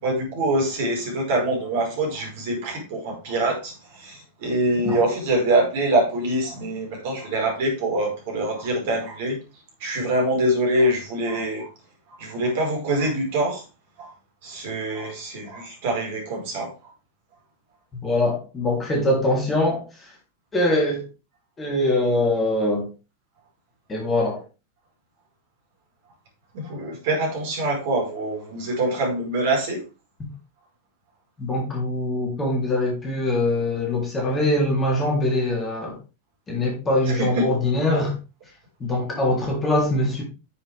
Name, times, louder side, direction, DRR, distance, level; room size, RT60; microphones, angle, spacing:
voice 1, 0.0-9.4 9.8-11.7 12.2-13.6 14.0-14.1 14.4-16.7 26.5-29.8 37.1-37.4, right 1 dB, 50° right, 0 dB, 5.0 m, -24 dB
voice 2, 18.0-20.1 20.5-21.1 21.6-22.9 23.9-24.4 31.4-36.0 36.5-38.1 38.8-40.2, left 1 dB, 20° left, -1 dB, 3.6 m, -23 dB
10.5 x 7.4 x 3.6 m, 0.30 s
figure-of-eight pair, 90°, 0 cm